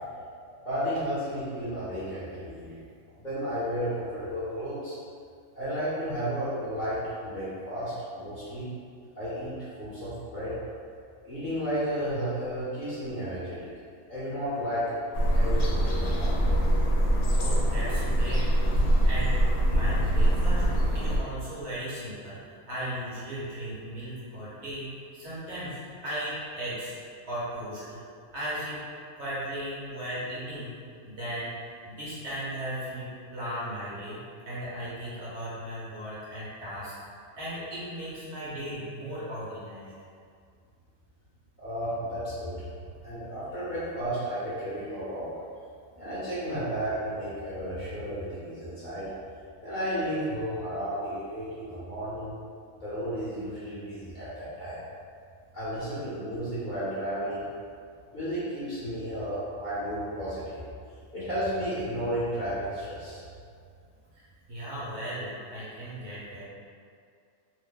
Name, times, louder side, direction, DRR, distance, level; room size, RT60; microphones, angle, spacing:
voice 1, 0.6-2.7 3.2-4.9 5.6-8.7 9.2-10.6 11.2-13.7 14.1-14.9 15.4-16.5 41.6-42.6 43.0-45.3 46.0-49.1 49.6-52.3 52.8-54.8 55.5-57.4 58.1-60.6 61.1-63.2, equal, 40° left, -12 dB, 0.8 m, -33 dB
sound 1, 15.1-21.2, right 1 dB, 70° left, 0.9 m, -24 dB
voice 2, 17.3-18.5 19.0-19.4 19.7-20.7 20.9-27.0 27.3-28.0 28.3-28.8 29.2-30.8 31.0-34.2 34.4-36.9 37.3-39.9 64.1-64.2 64.5-66.4, equal, 60° right, -9 dB, 1.0 m, -36 dB
2.8 x 2.0 x 3.5 m, 2.3 s
omnidirectional pair, 1.5 m